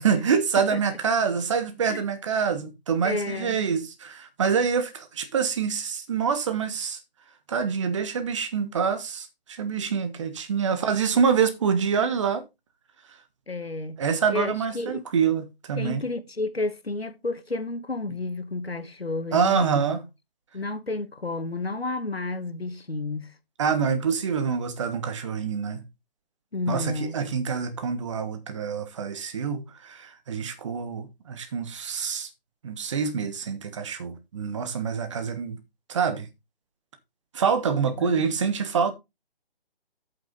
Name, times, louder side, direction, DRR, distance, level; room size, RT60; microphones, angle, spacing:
voice 1, 0.0-7.0 7.5-12.4 14.0-16.0 19.3-20.0 23.6-25.8 26.7-32.3 32.6-35.6 35.9-36.3 37.3-38.9, right 6 dB, 30° right, 1.5 m, -26 dB
voice 2, 0.6-1.0 1.9-2.0 3.0-3.6 10.7-10.8 13.5-14.0 14.3-15.0 15.8-19.8 20.5-23.3 26.5-27.2 38.0-38.3, left 2 dB, 90° left, 1.5 m, -31 dB
8.8 x 7.5 x 4.0 m
figure-of-eight pair, 150°, 30 cm